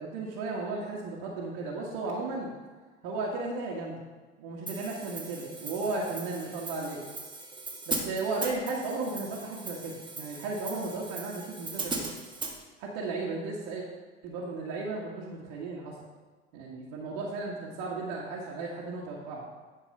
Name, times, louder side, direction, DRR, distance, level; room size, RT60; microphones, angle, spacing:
voice 1, 0.0-2.5 3.0-4.1 4.4-7.0 7.9-12.1 12.8-13.8 14.2-16.0 16.5-19.4, right 3 dB, 60° right, -4 dB, 1.7 m, -35 dB
Hi-hat, 4.7-12.6, right 3 dB, 15° right, 1.6 m, -39 dB
10.5 x 4.7 x 5.5 m, 1.3 s
hypercardioid pair, 75°, 34 cm